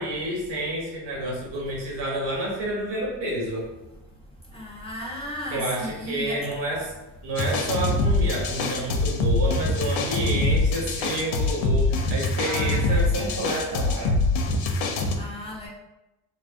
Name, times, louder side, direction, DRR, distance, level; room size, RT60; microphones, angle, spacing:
voice 1, 0.0-3.7 5.5-6.9 7.2-14.2, right 1 dB, 60° right, -3 dB, 1.0 m, -29 dB
voice 2, 4.5-6.4 12.4-13.4 15.2-15.7, left 1 dB, 10° left, -5 dB, 0.8 m, -35 dB
sound 1, 7.4-15.2, left 2 dB, 75° left, 0.5 m, -24 dB
2.4 x 2.1 x 2.4 m, 0.95 s
hypercardioid pair, 55°, 47 cm